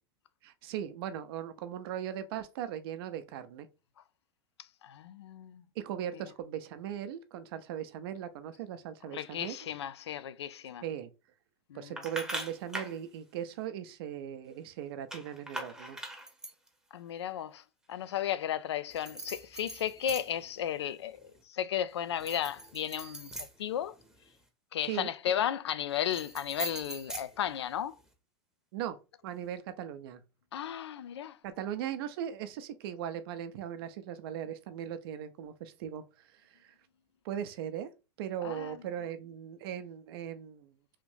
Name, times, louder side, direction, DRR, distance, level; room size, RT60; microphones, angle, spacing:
voice 1, 0.4-3.7 5.8-9.6 10.8-11.1 11.7-16.0 24.8-25.1 28.7-29.0 29.2-30.2 31.4-36.0 36.3-36.7 37.2-37.9 38.2-40.7, right 10 dB, 65° right, 0.6 m, -39 dB
voice 2, 4.8-5.6 9.1-10.8 11.7-12.0 16.9-17.6 17.9-23.3 23.6-23.9 24.7-27.9 30.5-31.4 38.4-38.8, left 10 dB, 85° left, 0.4 m, -34 dB
sound 1, 12.0-13.0 15.1-16.7 18.9-20.5 20.9-21.4 22.1-24.3 25.9-28.0, right 1 dB, 5° right, 0.8 m, -42 dB
3.2 x 2.6 x 3.2 m
hypercardioid pair, 110°, 14 cm